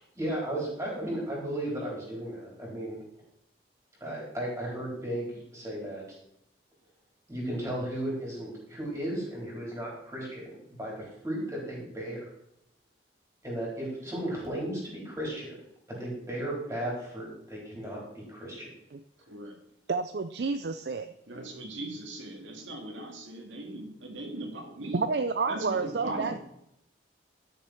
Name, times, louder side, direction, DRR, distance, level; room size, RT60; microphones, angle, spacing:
voice 1, 0.0-3.0 4.0-6.2 7.3-10.5 10.8-12.2 13.4-15.5 15.9-18.7, right 1 dB, 15° right, -4 dB, 4.3 m, -35 dB
voice 2, 19.3-19.6 21.3-25.0 25.5-26.4, right 1 dB, 85° right, 2 dB, 2.1 m, -39 dB
voice 3, 19.9-21.1 24.9-26.3, right 4 dB, 60° right, 9 dB, 0.5 m, -29 dB
12.5 x 6.7 x 4.5 m, 0.80 s
head